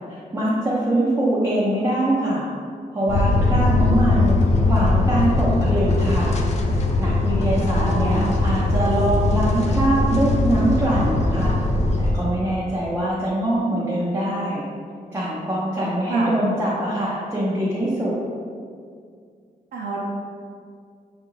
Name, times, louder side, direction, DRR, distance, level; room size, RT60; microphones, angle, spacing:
voice 1, 0.1-2.5 2.9-6.4 7.0-11.5 12.0-14.6 15.1-18.1, right 1 dB, 15° right, -8 dB, 0.5 m, -23 dB
sound 1, 3.1-12.1, left 2 dB, 45° left, 0.4 m, -20 dB
voice 2, 7.5-8.2 16.1-16.3 19.7-20.0, right 3 dB, 75° right, -4 dB, 0.6 m, -28 dB
5.9 x 2.4 x 3.0 m, 2.2 s
wide cardioid pair, 175°, 15 cm